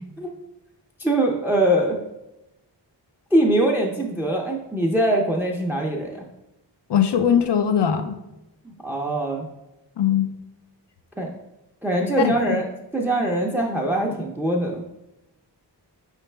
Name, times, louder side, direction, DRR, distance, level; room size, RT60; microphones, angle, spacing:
voice 1, 1.0-2.0 3.3-6.3 8.6-9.5 11.2-11.3 11.8-12.7 12.9-14.8, right 1 dB, 5° right, 0 dB, 0.5 m, -22 dB
voice 2, 6.9-8.2 10.0-10.3 12.2-12.6, left 8 dB, 70° left, 9 dB, 0.5 m, -20 dB
4.9 x 3.3 x 3.2 m, 0.95 s
wide cardioid pair, 55°, 42 cm